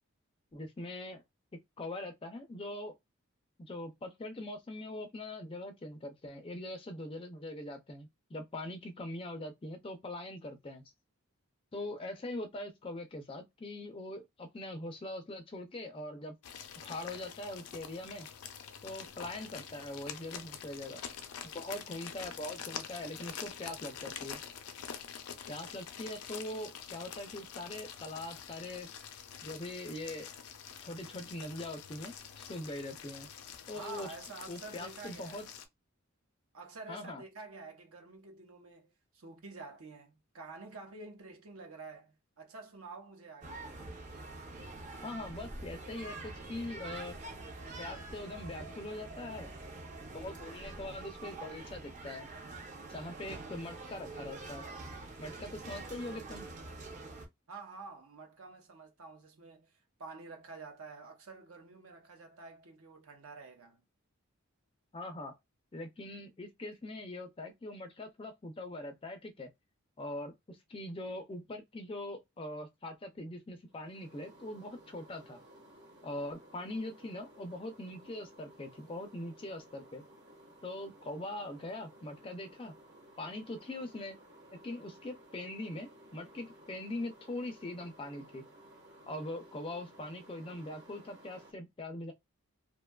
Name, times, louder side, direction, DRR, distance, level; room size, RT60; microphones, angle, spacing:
voice 1, 0.5-1.2 1.8-2.9 3.6-10.9 11.7-16.4 16.8-18.3 18.8-21.0 21.4-24.4 25.5-28.9 29.4-30.3 30.8-33.3 33.7-34.1 34.5-35.4 36.9-37.2 45.0-47.2 47.8-49.5 50.1-52.3 52.9-54.7 55.2-56.5 64.9-65.4 65.7-69.5 70.0-75.4 76.0-80.0 80.6-82.7 83.2-84.2 84.6-88.4 89.1-92.1, left 1 dB, 25° left, 0.4 m, -42 dB
sound 1, 16.4-35.6, left 8 dB, 90° left, 0.5 m, -46 dB
voice 2, 33.7-35.4 36.5-43.6 57.5-63.8, right 3 dB, 75° right, 0.7 m, -49 dB
sound 2, 43.4-57.3, right 2 dB, 35° right, 0.5 m, -45 dB
sound 3, 73.7-91.5, right 1 dB, 50° right, 1.1 m, -57 dB
2.6 x 2.2 x 2.2 m
head